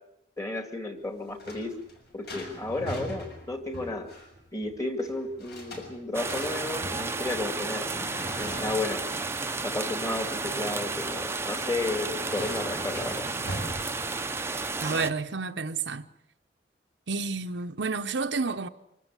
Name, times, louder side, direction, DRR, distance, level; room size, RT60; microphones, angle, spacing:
voice 1, 0.4-1.8 2.1-4.1 4.5-7.9 8.4-9.1 9.6-13.3, left 2 dB, 20° left, 2.3 m, -33 dB
sound 1, 1.0-14.6, equal, 60° left, 7.1 m, -42 dB
sound 2, 6.1-15.1, right 3 dB, 15° right, 0.8 m, -32 dB
voice 2, 14.8-16.1 17.1-18.7, right 4 dB, 80° right, 0.9 m, -30 dB
25.0 x 14.0 x 9.8 m
head